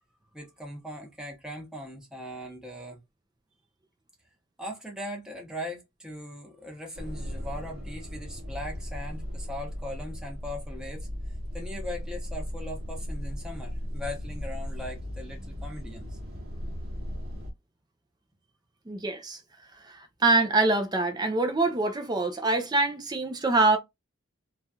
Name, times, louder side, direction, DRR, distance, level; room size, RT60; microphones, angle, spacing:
voice 1, 0.3-3.0 4.6-11.1 11.5-16.1, left 1 dB, 5° right, 0.9 m, -39 dB
sound 1, 6.9-17.5, equal, 50° right, 1.0 m, -37 dB
voice 2, 18.9-19.4 19.8-23.8, right 2 dB, 20° right, 0.5 m, -25 dB
3.1 x 2.3 x 2.7 m
head